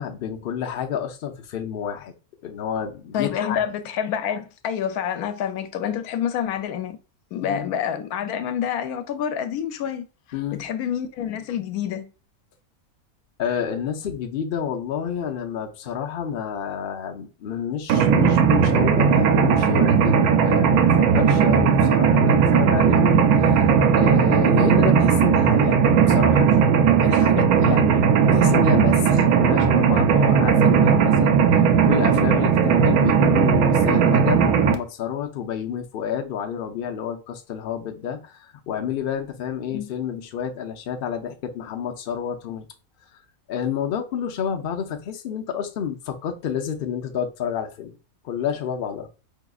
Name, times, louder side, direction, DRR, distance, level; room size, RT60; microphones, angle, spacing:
voice 1, 0.0-2.1 2.4-3.6 7.4-7.7 10.3-10.6 13.4-26.6 27.0-31.4 31.8-42.7 43.1-43.2 43.5-47.9 48.2-49.1, left 8 dB, 55° left, 0.7 m, -29 dB
voice 2, 3.1-7.0 7.3-10.0 10.5-12.1 39.7-39.9, left 9 dB, 85° left, 1.1 m, -27 dB
Mechanisms, 17.9-34.7, right 7 dB, 80° right, 1.1 m, -17 dB
4.8 x 2.8 x 2.3 m
omnidirectional pair, 1.5 m